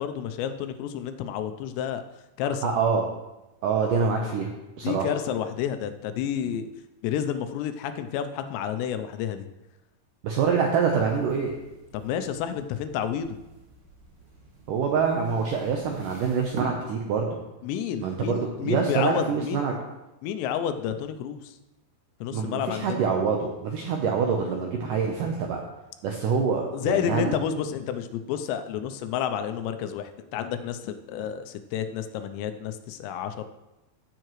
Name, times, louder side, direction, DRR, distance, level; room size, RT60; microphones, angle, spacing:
voice 1, 0.0-2.0 2.4-2.7 4.8-6.7 7.0-9.5 11.9-13.4 17.6-19.8 20.2-21.5 22.2-23.0 26.7-33.4, left 9 dB, 85° left, 9 dB, 2.9 m, -30 dB
voice 2, 2.6-3.1 3.6-4.5 4.8-5.1 10.2-11.6 14.7-17.3 18.0-19.7 22.3-25.6 26.0-27.3, right 5 dB, 85° right, 1 dB, 1.9 m, -25 dB
sound 1, 10.8-16.6, right 4 dB, 40° right, 2.0 m, -48 dB
15.0 x 7.7 x 3.1 m, 1.0 s
omnidirectional pair, 5.0 m